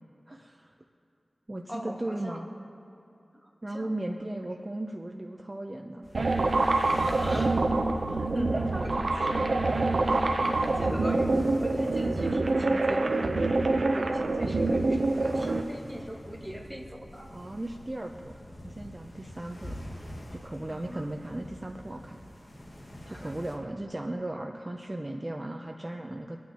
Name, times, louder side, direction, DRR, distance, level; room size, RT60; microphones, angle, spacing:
voice 1, 0.3-0.7 1.5-2.5 3.6-6.1 8.1-9.3 10.1-10.3 10.6-11.0 17.3-18.3 18.6-19.7 20.3-22.2 23.1-26.4, right 1 dB, 30° right, 3 dB, 0.6 m, -36 dB
voice 2, 1.7-2.4 3.4-3.9 7.0-7.7 8.3-9.7 10.4-17.3 20.7-21.1 23.1-23.3, equal, ahead, -1 dB, 1.8 m, -40 dB
sound 1, 6.0-23.6, equal, 50° left, 1.9 m, -46 dB
sound 2, 6.1-15.6, right 2 dB, 70° right, 0.7 m, -26 dB
24.0 x 9.4 x 3.0 m, 2.8 s
wide cardioid pair, 70°, 0 cm